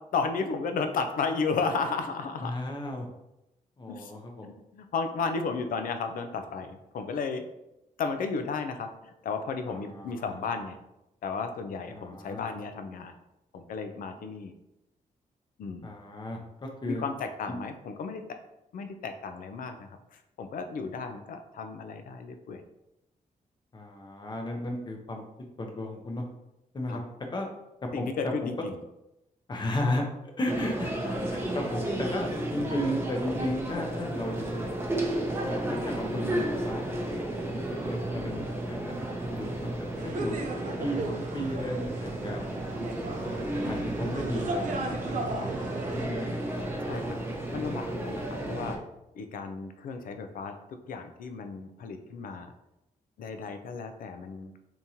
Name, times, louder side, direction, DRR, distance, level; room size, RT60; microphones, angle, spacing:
voice 1, 0.1-2.6 3.9-4.1 4.4-7.5 8.0-10.8 11.2-13.2 13.5-14.5 15.6-15.9 16.8-18.2 18.7-22.6 26.9-27.0 27.9-28.8 46.9-47.2 47.5-48.8 49.1-52.5 53.2-54.5, left 4 dB, 75° left, 7 dB, 0.4 m, -34 dB
voice 2, 2.4-3.1 3.8-4.5 9.7-10.3 11.9-12.4 15.8-17.0 23.7-25.2 25.6-26.2 26.7-27.0 27.3-27.5 28.0-28.1 29.5-30.0 30.4-34.7 35.4-40.4 40.8-42.5 43.6-45.4 45.9-46.8, left 1 dB, 30° left, 2 dB, 0.7 m, -35 dB
sound 1, 30.5-48.8, right 1 dB, 15° right, 0.7 m, -33 dB
sound 2, 40.0-46.1, right 2 dB, 65° right, 0.5 m, -36 dB
3.6 x 2.9 x 2.7 m, 0.89 s
cardioid pair, 105°, 14 cm